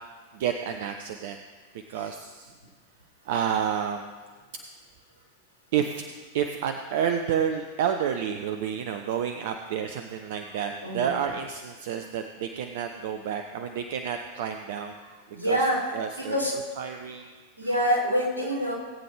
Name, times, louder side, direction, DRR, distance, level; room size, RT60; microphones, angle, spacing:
voice 1, 0.3-1.4 1.9-2.5 3.3-4.0 5.7-6.1 6.3-15.2 15.4-15.6 15.9-16.3 16.8-17.3, right 8 dB, 55° right, 6 dB, 0.6 m, -30 dB
voice 2, 10.8-11.2 15.3-16.5 17.6-18.7, equal, 80° right, -6 dB, 4.2 m, -26 dB
19.0 x 8.7 x 3.3 m, 1.4 s
figure-of-eight pair, 90°, 0 cm